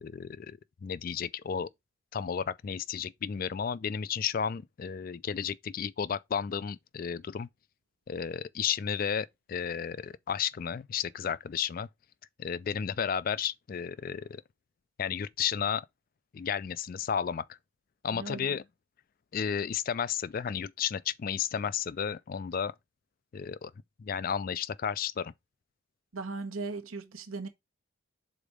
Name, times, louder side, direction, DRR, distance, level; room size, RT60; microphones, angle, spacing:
voice 1, 0.0-1.7 2.1-7.5 8.1-11.9 12.4-14.4 15.0-15.9 16.3-17.4 18.0-18.6 19.3-22.7 23.3-23.7 24.0-25.3, left 7 dB, 40° left, 0.3 m, -33 dB
voice 2, 18.1-18.6 26.1-27.5, right 3 dB, 85° right, 1.0 m, -38 dB
5.1 x 4.1 x 4.8 m
head